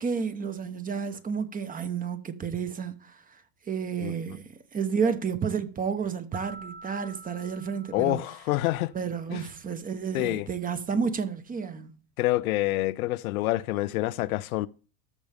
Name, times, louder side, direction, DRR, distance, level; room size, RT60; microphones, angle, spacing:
voice 1, 0.0-3.4 3.7-8.2 8.9-11.9, right 6 dB, 20° right, 1.0 m, -31 dB
sound 1, 6.3-9.1, right 3 dB, 55° right, 2.5 m, -47 dB
voice 2, 7.9-8.9 9.3-9.5 10.1-10.5 12.2-14.7, left 17 dB, 85° left, 0.6 m, -27 dB
13.5 x 5.3 x 3.5 m
supercardioid pair, 115°, 42 cm